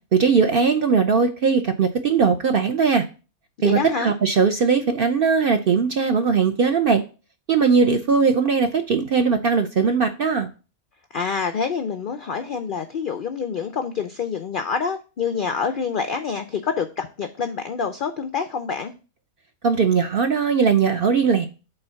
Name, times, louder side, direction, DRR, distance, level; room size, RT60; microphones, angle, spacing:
voice 1, 0.1-3.1 3.6-7.0 7.5-10.5 19.6-21.5, right 5 dB, 60° right, 7 dB, 0.6 m, -19 dB
voice 2, 3.6-4.1 11.1-18.9, left 6 dB, 80° left, 8 dB, 0.4 m, -27 dB
5.6 x 4.0 x 5.6 m, 0.33 s
omnidirectional pair, 1.5 m